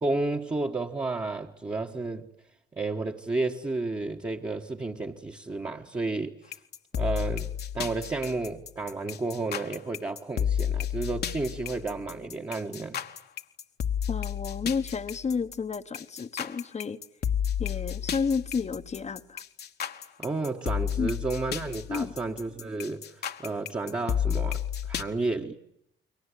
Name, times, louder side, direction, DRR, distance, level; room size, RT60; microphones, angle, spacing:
voice 1, 0.0-2.3 2.7-6.3 6.9-13.0 20.2-25.5, right 3 dB, 20° right, 1.5 m, -32 dB
sound 1, 6.5-25.0, left 8 dB, 55° left, 1.4 m, -32 dB
voice 2, 14.1-17.0 17.6-19.4 21.0-21.1 21.9-22.1, left 5 dB, 35° left, 1.2 m, -31 dB
29.5 x 23.0 x 8.3 m
cardioid pair, 90°, 20 cm